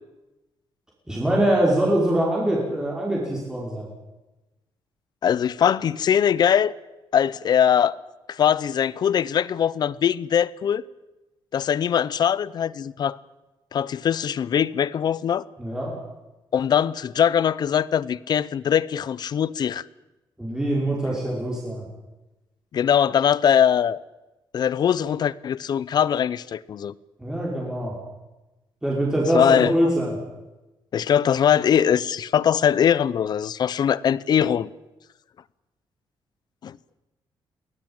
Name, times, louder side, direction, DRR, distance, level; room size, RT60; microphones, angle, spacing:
voice 1, 1.1-3.9 15.6-15.9 20.4-21.9 27.2-28.0 28.8-30.2, right 1 dB, 5° right, 5.3 m, -23 dB
voice 2, 5.2-6.7 7.1-7.9 8.3-10.8 11.5-13.2 13.7-15.5 16.5-19.8 22.7-24.0 24.5-26.9 29.3-29.7 30.9-34.7 36.6-36.8, left 8 dB, 50° left, 0.7 m, -21 dB
22.5 x 17.0 x 8.9 m
cardioid pair, 145°, 9 cm